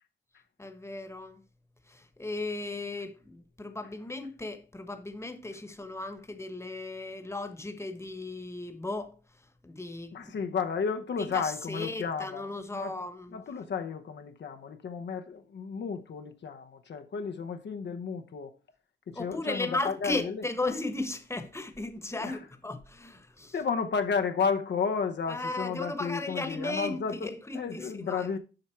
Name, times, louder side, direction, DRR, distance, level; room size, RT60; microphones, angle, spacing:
voice 1, 0.6-1.4 1.9-9.1 9.6-10.3 11.2-13.4 19.1-23.5 25.3-28.3, left 2 dB, 15° left, 1.2 m, -36 dB
voice 2, 10.1-12.9 13.3-18.5 19.1-20.4 22.2-22.4 23.5-28.4, left 6 dB, 70° left, 0.8 m, -32 dB
7.8 x 5.7 x 4.5 m
cardioid pair, 85°, 19 cm